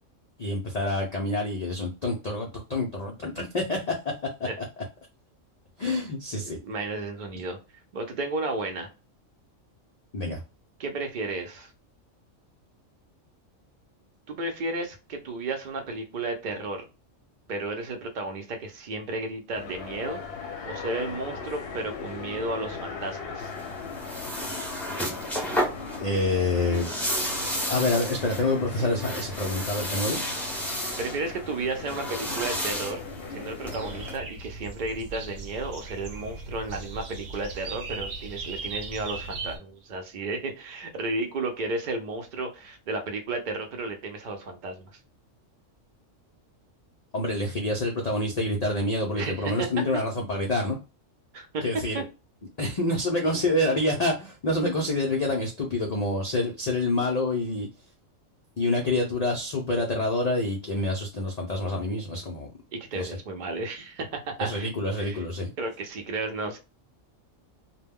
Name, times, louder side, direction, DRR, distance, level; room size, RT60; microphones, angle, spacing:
voice 1, 0.4-4.1 4.4-4.5 5.8-6.6 10.1-10.4 26.0-26.9 27.7-30.2 47.1-50.8 51.6-52.0 52.6-57.7 58.6-62.5 62.9-63.1 64.4-65.5, left 2 dB, 85° left, 1 dB, 0.3 m, -27 dB
voice 2, 6.4-7.6 7.9-8.9 10.8-11.7 14.3-16.9 17.5-23.5 31.0-33.0 33.3-45.0 49.1-49.7 51.3-51.6 51.9-52.0 62.7-64.7 65.0-65.2 65.6-66.6, right 2 dB, 50° right, 4 dB, 0.6 m, -33 dB
sound 1, 19.5-34.1, left 5 dB, 60° left, 0.7 m, -38 dB
sound 2, 23.4-34.2, equal, ahead, 0.4 m, -33 dB
sound 3, 33.6-39.6, right 3 dB, 70° right, 0.9 m, -38 dB
2.2 x 2.1 x 3.4 m, 0.30 s
omnidirectional pair, 1.3 m